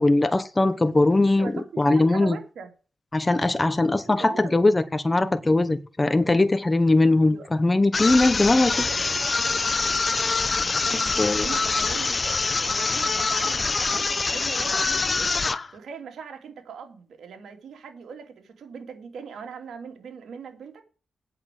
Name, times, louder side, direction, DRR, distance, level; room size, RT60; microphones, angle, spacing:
voice 1, 0.0-2.4 3.1-8.8 10.9-11.5, left 2 dB, 25° left, 1.2 m, -21 dB
voice 2, 1.1-2.7 4.0-4.5 7.2-7.5 10.4-15.3 15.7-20.8, right 6 dB, 80° right, 3.0 m, -40 dB
sound 1, 7.9-15.7, left 4 dB, 45° left, 1.0 m, -25 dB
8.8 x 7.3 x 7.8 m
cardioid pair, 60°, 0 cm